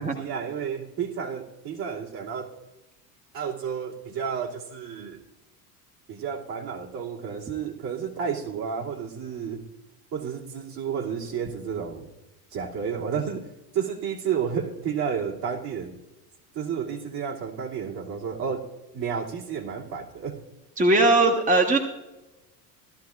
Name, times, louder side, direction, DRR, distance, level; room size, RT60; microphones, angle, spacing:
voice 1, 0.0-2.5 3.3-5.2 6.1-9.6 10.1-12.1 12.5-13.5 13.7-16.0 16.5-18.6 18.9-20.4, right 7 dB, 55° right, -5 dB, 2.8 m, -31 dB
voice 2, 20.8-21.8, right 2 dB, 15° right, 3 dB, 1.2 m, -19 dB
17.5 x 13.0 x 2.5 m, 1.0 s
hypercardioid pair, 75°, 46 cm